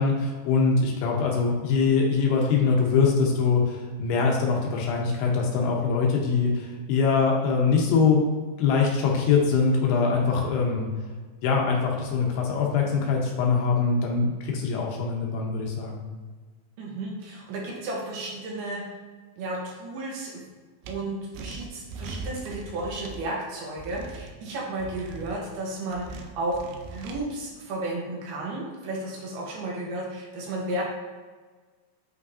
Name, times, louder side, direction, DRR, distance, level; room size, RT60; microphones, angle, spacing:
voice 1, 0.0-8.2 8.6-10.9 11.4-16.0, left 5 dB, 75° left, -1 dB, 2.8 m, -23 dB
voice 2, 16.8-18.8 19.4-20.4 20.9-26.6 26.9-30.8, right 2 dB, 75° right, -2 dB, 2.9 m, -33 dB
sound 1, 20.8-20.9 21.3-23.2 23.8-24.3 24.8-25.4 25.9-27.2, right 3 dB, 90° right, 2.0 m, -39 dB
8.5 x 5.1 x 2.7 m, 1.4 s
omnidirectional pair, 5.0 m